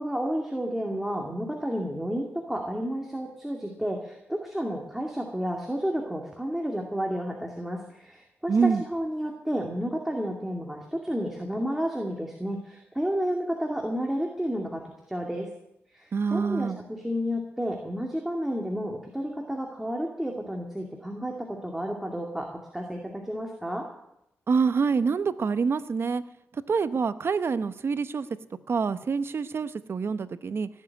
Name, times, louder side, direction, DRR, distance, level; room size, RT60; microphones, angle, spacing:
voice 1, 0.0-14.8 15.1-15.5 15.9-22.5 22.7-23.8, equal, 5° right, 1 dB, 2.3 m, -31 dB
voice 2, 8.5-8.8 16.1-16.8 24.5-26.2 26.5-28.3 28.7-30.7, right 5 dB, 55° right, 13 dB, 0.9 m, -26 dB
17.5 x 7.4 x 9.6 m, 0.83 s
cardioid pair, 80°, 5 cm